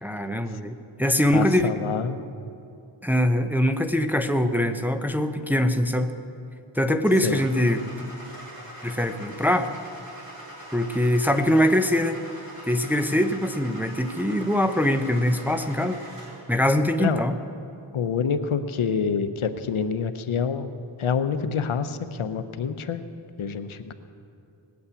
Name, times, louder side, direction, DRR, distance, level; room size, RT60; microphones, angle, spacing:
voice 1, 0.0-1.7 3.0-6.1 6.7-8.1 8.8-9.7 10.7-12.2 12.7-16.0 16.5-17.3, left 1 dB, 5° right, 7 dB, 0.7 m, -23 dB
voice 2, 1.3-2.2 7.2-7.4 17.0-17.2 17.9-20.7 21.0-23.0 23.4-23.9, left 6 dB, 75° left, 10 dB, 0.9 m, -27 dB
Car / Engine starting, 7.2-16.5, equal, 45° right, 4.7 m, -42 dB
19.5 x 8.6 x 8.3 m, 2.7 s
wide cardioid pair, 95°, 49 cm